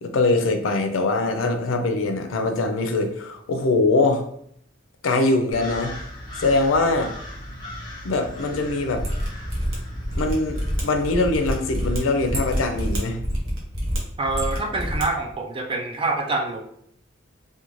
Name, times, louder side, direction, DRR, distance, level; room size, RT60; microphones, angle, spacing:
voice 1, 0.0-4.2 5.0-5.9 6.4-7.1 8.0-9.1 10.2-13.2, left 2 dB, 85° left, 6 dB, 0.4 m, -22 dB
sound 1, 5.5-13.2, left 1 dB, 20° left, 0.7 m, -38 dB
Mechanisms, 8.9-15.1 15.3-15.4, equal, 90° right, 0.8 m, -27 dB
voice 2, 14.2-16.6, right 3 dB, 25° right, 2 dB, 0.4 m, -26 dB
2.5 x 2.2 x 2.9 m, 0.67 s
head